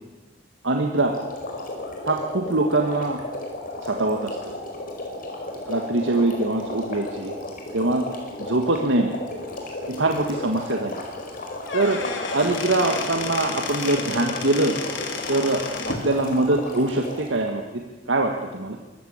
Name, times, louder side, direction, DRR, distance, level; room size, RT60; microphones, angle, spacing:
voice 1, 0.6-1.1 2.1-3.2 3.8-4.5 5.7-7.3 7.7-8.1 8.4-9.1 9.9-11.0 11.7-12.0 12.3-14.8 15.3-17.6 18.1-18.8, right 2 dB, 85° right, 3 dB, 1.8 m, -23 dB
sound 1, 1.0-17.4, left 2 dB, 50° left, 4.8 m, -34 dB
Squeak / Wood, 11.5-16.1, left 4 dB, 85° left, 3.0 m, -32 dB
23.5 x 14.0 x 8.9 m, 1.2 s
head